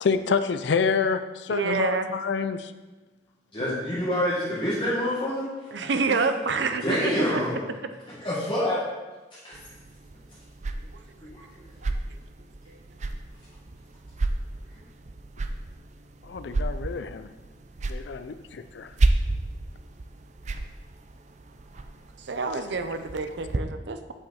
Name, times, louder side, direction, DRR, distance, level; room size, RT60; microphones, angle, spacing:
voice 1, 0.0-2.7 3.6-3.8 16.2-17.3 17.9-18.9, left 5 dB, 75° left, 11 dB, 0.4 m, -27 dB
voice 2, 1.5-2.1 5.7-7.4 12.7-12.8 22.3-24.1, right 4 dB, 80° right, 9 dB, 0.6 m, -28 dB
voice 3, 3.5-5.5 6.5-7.6 8.1-8.8 9.3-9.6 11.2-11.7, equal, 25° left, -9 dB, 1.8 m, -27 dB
sound 1, 9.5-23.6, right 2 dB, 40° right, 0.4 m, -32 dB
8.3 x 5.6 x 4.2 m, 1.2 s
head